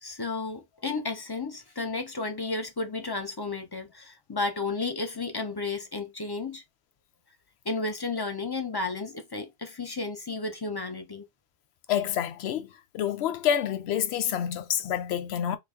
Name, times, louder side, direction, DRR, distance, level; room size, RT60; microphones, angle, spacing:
voice 1, 0.0-6.6 7.6-11.2, left 3 dB, 30° left, 0.5 m, -33 dB
voice 2, 11.9-15.6, left 9 dB, 85° left, 0.9 m, -28 dB
3.8 x 2.2 x 3.5 m
omnidirectional pair, 1.1 m